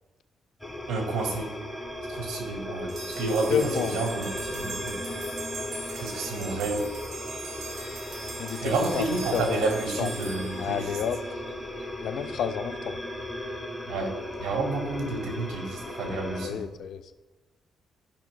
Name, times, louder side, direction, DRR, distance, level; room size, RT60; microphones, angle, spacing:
sound 1, 0.6-16.5, left 1 dB, ahead, 1.6 m, -36 dB
voice 1, 0.9-1.5 2.1-3.6 3.9-5.0 5.9-6.9 8.6-10.8 13.9-14.1 14.4-16.6, right 3 dB, 85° right, 2 dB, 2.1 m, -30 dB
sound 2, 2.9-11.4, right 3 dB, 65° right, 1.9 m, -41 dB
voice 2, 3.5-4.0 8.4-9.1 9.3-10.1 10.6-11.4 12.0-13.0 16.1-17.1, left 8 dB, 70° left, 10 dB, 0.5 m, -31 dB
13.5 x 5.8 x 2.3 m, 1.2 s
cardioid pair, 90°, 0 cm